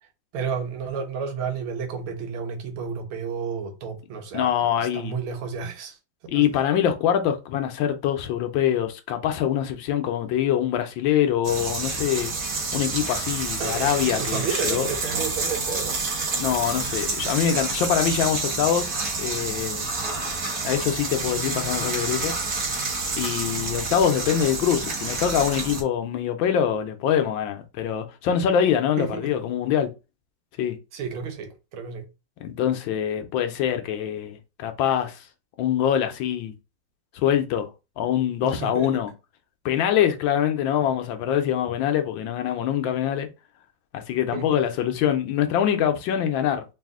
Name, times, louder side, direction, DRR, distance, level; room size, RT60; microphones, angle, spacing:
voice 1, 0.3-6.0 6.3-6.5 13.6-16.0 29.0-29.3 30.9-32.1 38.4-38.9 44.3-44.5, right 6 dB, 85° right, 1.7 m, -31 dB
voice 2, 4.3-5.1 6.3-12.3 12.7-14.9 16.4-18.9 19.2-19.9 20.6-22.3 23.2-29.9 30.6-30.8 32.4-35.2 35.6-36.5 37.1-37.7 38.0-39.1 39.6-43.3 43.9-46.6, left 9 dB, 75° left, 1.3 m, -24 dB
sound 1, 11.4-25.8, right 3 dB, 50° right, 1.7 m, -28 dB
4.1 x 2.5 x 3.6 m
omnidirectional pair, 2.2 m